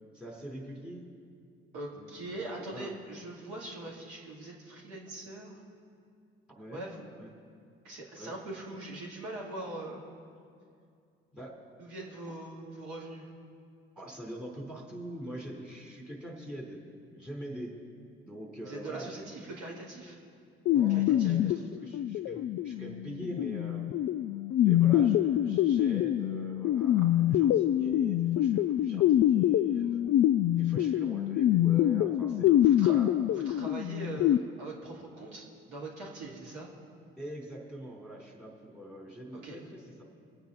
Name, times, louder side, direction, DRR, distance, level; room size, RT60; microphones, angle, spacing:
voice 1, 0.1-1.0 1.9-2.9 6.5-6.9 7.1-7.3 8.2-8.3 11.3-11.6 14.0-16.8 17.1-17.8 18.2-19.3 20.7-24.0 24.6-30.0 30.6-32.5 32.9-33.1 37.2-40.0, equal, 5° right, -2 dB, 3.9 m, -43 dB
voice 2, 1.7-5.6 6.7-7.0 7.8-10.0 11.8-13.3 18.6-20.2 20.9-21.6 32.5-33.0 33.3-36.7 39.3-39.6, right 2 dB, 70° right, -3 dB, 2.5 m, -42 dB
sound 1, 20.7-34.4, left 12 dB, 45° left, 0.4 m, -25 dB
22.0 x 8.7 x 4.1 m, 2.3 s
figure-of-eight pair, 45°, 32 cm